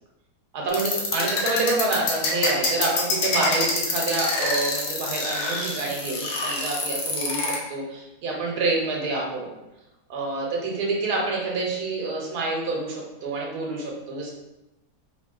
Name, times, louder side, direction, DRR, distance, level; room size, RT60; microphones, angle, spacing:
voice 1, 0.5-9.5 10.1-14.3, right 3 dB, 80° right, -2 dB, 1.3 m, -27 dB
sound 1, 0.7-7.6, left 3 dB, 85° left, 1.2 m, -26 dB
3.0 x 2.8 x 2.3 m, 0.98 s
omnidirectional pair, 1.7 m